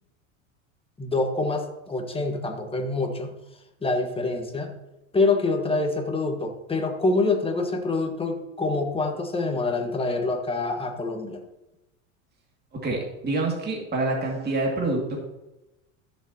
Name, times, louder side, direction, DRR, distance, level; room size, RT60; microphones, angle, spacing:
voice 1, 1.0-3.3 3.8-4.7 5.1-11.4, left 3 dB, 15° left, 4 dB, 1.5 m, -26 dB
voice 2, 12.7-15.2, right 2 dB, 25° right, -1 dB, 2.3 m, -27 dB
14.5 x 6.9 x 2.9 m, 0.96 s
hypercardioid pair, 95°, 40 cm